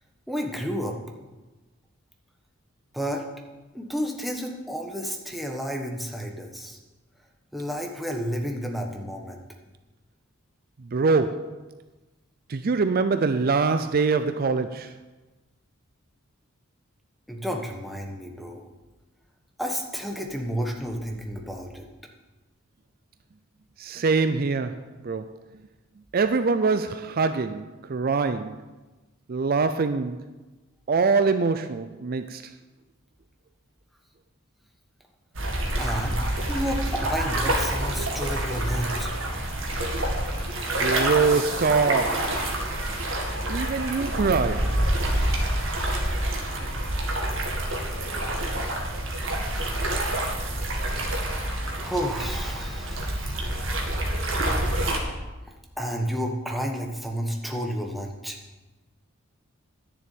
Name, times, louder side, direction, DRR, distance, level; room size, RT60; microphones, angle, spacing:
voice 1, 0.3-1.0 2.9-3.2 3.7-6.8 7.5-9.4 17.3-18.6 19.6-21.8 35.8-36.2 36.5-39.1 47.9-48.0 51.0-53.4 55.8-58.4, equal, ahead, 1.2 m, -31 dB
voice 2, 10.8-11.6 12.5-15.0 23.8-25.4 26.1-28.6 29.3-30.3 30.9-32.5 40.8-42.4 43.5-44.9 46.2-46.4, right 4 dB, 45° right, 0.4 m, -24 dB
sound 1, 35.3-55.0, right 1 dB, 65° right, 2.1 m, -27 dB
10.5 x 7.0 x 8.5 m
head